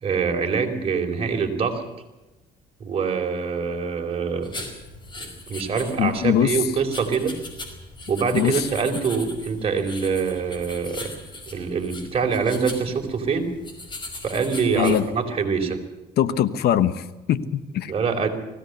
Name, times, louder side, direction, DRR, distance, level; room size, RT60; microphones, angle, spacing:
voice 1, 0.0-1.8 2.8-4.7 5.2-7.4 8.1-11.2 11.5-13.5 14.2-15.8 17.9-18.3, right 5 dB, 35° right, 3 dB, 4.4 m, -25 dB
sound 1, 4.4-15.0, left 2 dB, 25° left, 5.2 m, -39 dB
voice 2, 6.0-6.5 8.3-8.7 14.8-15.0 16.2-17.9, left 10 dB, 70° left, 14 dB, 1.1 m, -22 dB
20.0 x 16.5 x 8.1 m, 1.1 s
cardioid pair, 110°, 17 cm